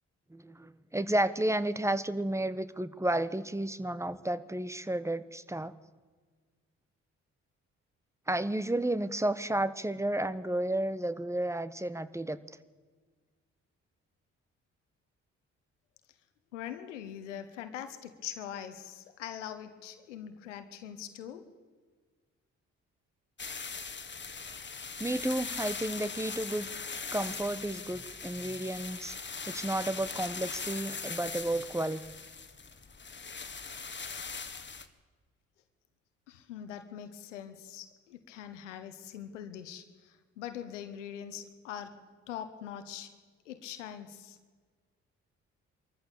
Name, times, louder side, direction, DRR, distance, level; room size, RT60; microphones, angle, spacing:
voice 1, 0.3-5.7 8.3-12.4 25.0-26.7 27.1-29.2 29.5-32.0, right 1 dB, 10° right, 15 dB, 1.3 m, -32 dB
voice 2, 16.5-21.4 36.3-39.8 40.4-42.0 42.3-43.1 43.5-44.4, left 9 dB, 85° left, 9 dB, 1.2 m, -42 dB
sound 1, 23.4-34.9, left 5 dB, 30° left, 1.8 m, -40 dB
23.5 x 14.0 x 8.5 m, 1.5 s
hypercardioid pair, 40°, 36 cm